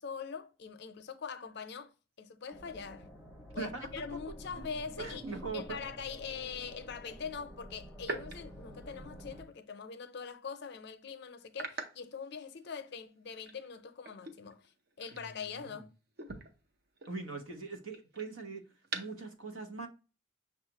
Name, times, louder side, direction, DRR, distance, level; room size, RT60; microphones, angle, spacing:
voice 1, 0.0-1.9 2.2-3.1 3.5-14.7 15.0-15.9, left 6 dB, 55° left, 0.5 m, -43 dB
sound 1, 2.5-9.4, equal, ahead, 0.6 m, -49 dB
voice 2, 3.6-4.0 4.6-4.7 5.0-5.8 15.1-15.8 17.1-18.7 18.9-19.9, right 4 dB, 80° right, 0.9 m, -41 dB
sound 2, 4.9-5.8 8.0-9.6 10.0-10.2 10.6-10.7 11.5-13.0 13.3-15.8 16.1-19.3, right 3 dB, 50° right, 0.6 m, -46 dB
6.2 x 2.4 x 2.8 m
head